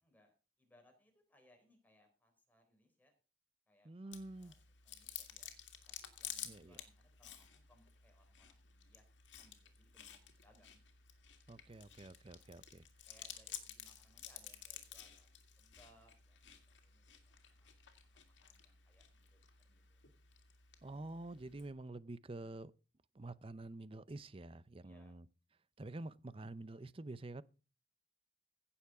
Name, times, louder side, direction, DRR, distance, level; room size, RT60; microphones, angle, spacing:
voice 1, 0.0-3.1 3.7-4.5 4.8-5.5 5.9-9.0 9.4-10.8 12.3-12.5 13.1-17.9 18.1-20.0 24.8-25.1, equal, 10° left, 3.9 m, -71 dB
voice 2, 3.8-4.5 6.4-6.8 11.5-12.9 20.8-22.7 23.1-25.3 25.8-27.4, right 2 dB, 30° right, 0.6 m, -48 dB
Chewing mastication, 4.1-21.7, left 10 dB, 80° left, 2.1 m, -53 dB
16.5 x 7.1 x 4.9 m
head